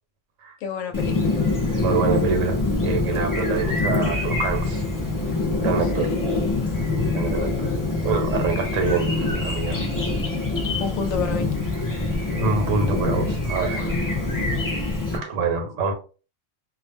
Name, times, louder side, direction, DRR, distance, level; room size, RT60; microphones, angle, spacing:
voice 1, 0.6-1.4 5.8-6.2 9.7-9.9 10.1-10.3 10.8-11.5, left 6 dB, 75° left, 0.9 m, -30 dB
Chirp tweet, 0.9-15.2, left 2 dB, 25° left, 0.4 m, -24 dB
voice 2, 1.8-4.8 5.6-6.1 7.1-7.7 8.0-9.9 12.4-14.3 15.1-15.9, right 5 dB, 70° right, 1.1 m, -26 dB
2.5 x 2.0 x 3.3 m
omnidirectional pair, 1.4 m